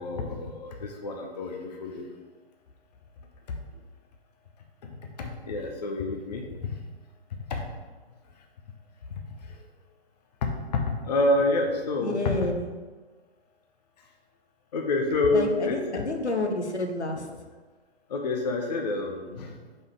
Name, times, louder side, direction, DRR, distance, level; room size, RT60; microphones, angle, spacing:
voice 1, 0.0-2.0 5.2-6.7 7.5-7.6 10.4-12.5 14.7-16.1 18.1-19.5, left 2 dB, 40° left, 2 dB, 0.7 m, -28 dB
voice 2, 12.0-12.7 15.3-17.4, left 2 dB, 80° left, 3 dB, 0.9 m, -29 dB
4.9 x 4.0 x 4.8 m, 1.4 s
figure-of-eight pair, 130°, 33 cm